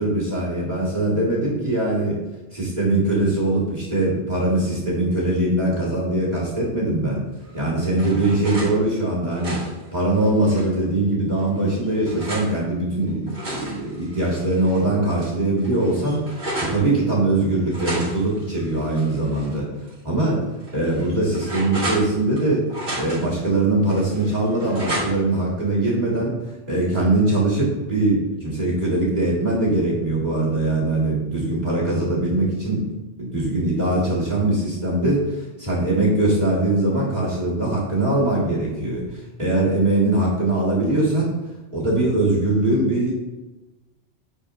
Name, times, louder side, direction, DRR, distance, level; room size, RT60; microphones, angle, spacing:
voice 1, 0.0-2.2 2.5-7.2 7.5-9.6 9.9-19.7 20.0-20.4 20.7-22.7 23.0-26.4 26.7-32.9 33.2-39.1 39.4-41.3 41.7-43.1, right 2 dB, 40° right, -5 dB, 2.2 m, -21 dB
sound 1, 7.4-8.7 9.2-10.8 11.4-12.5 13.1-14.8 15.2-15.3 15.6-16.8 17.7-19.5 19.9-20.0 20.6-22.4 22.7-23.4 23.9-25.4, right 1 dB, 75° right, 2.8 m, -33 dB
9.4 x 4.2 x 2.6 m, 1.1 s
omnidirectional pair, 1.2 m